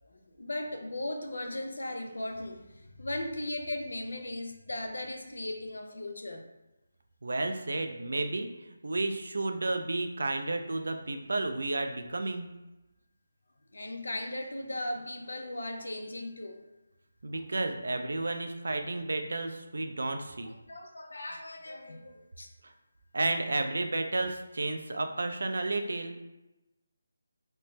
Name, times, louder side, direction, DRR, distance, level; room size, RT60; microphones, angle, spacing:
voice 1, 0.0-6.4 13.7-16.6 20.4-22.5 24.9-25.0, left 1 dB, 80° left, 4 dB, 0.5 m, -37 dB
voice 2, 7.2-12.5 17.2-20.5 22.6-22.7 23.1-26.2, right 2 dB, 70° right, 5 dB, 0.4 m, -32 dB
3.2 x 2.0 x 3.0 m, 0.99 s
figure-of-eight pair, 160°, 0 cm